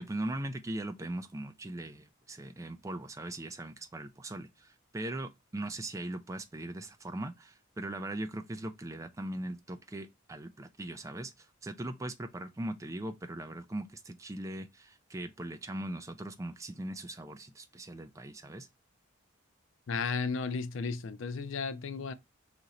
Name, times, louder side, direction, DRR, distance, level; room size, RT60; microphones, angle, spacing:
voice 1, 0.0-18.7, right 1 dB, 15° right, 0.3 m, -40 dB
voice 2, 19.9-22.1, left 4 dB, 70° left, 0.4 m, -34 dB
2.9 x 2.5 x 4.1 m
head